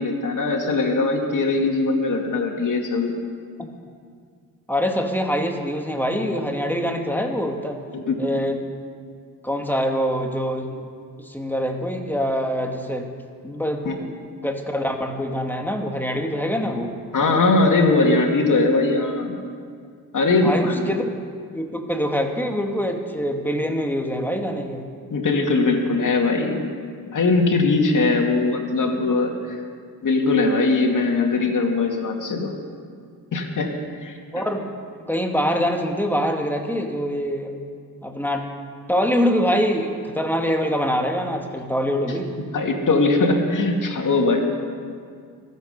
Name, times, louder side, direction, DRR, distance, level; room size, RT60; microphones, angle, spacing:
voice 1, 0.0-3.2 7.9-8.2 13.8-13.9 17.1-19.4 20.1-20.8 25.1-26.6 27.1-29.6 30.0-32.5 33.3-33.7 34.0-34.2 42.5-44.4, left 3 dB, 60° left, 2 dB, 2.5 m, -20 dB
voice 2, 4.7-7.8 8.2-8.6 9.4-10.8 11.2-13.1 13.4-14.1 14.4-16.9 20.4-21.1 21.5-24.9 34.3-34.7 35.1-37.5 38.0-38.5 38.9-42.3, equal, 5° left, 3 dB, 1.9 m, -24 dB
24.0 x 8.1 x 5.4 m, 2.1 s
cardioid pair, 60°, 35 cm